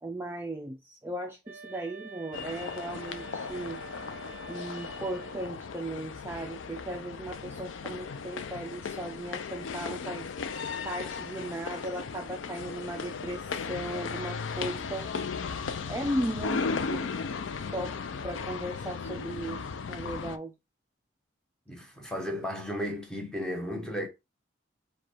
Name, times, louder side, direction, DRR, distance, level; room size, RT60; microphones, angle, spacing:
voice 1, 0.0-3.8 4.5-10.3 10.8-15.1 15.9-17.1 17.7-20.5, right 1 dB, 10° right, 0.4 m, -37 dB
sound 1, 1.4-5.6, right 4 dB, 40° right, 0.8 m, -47 dB
sound 2, 2.3-20.4, left 5 dB, 85° left, 0.4 m, -36 dB
voice 2, 21.7-24.1, equal, 5° left, 0.9 m, -34 dB
4.9 x 2.3 x 4.3 m
head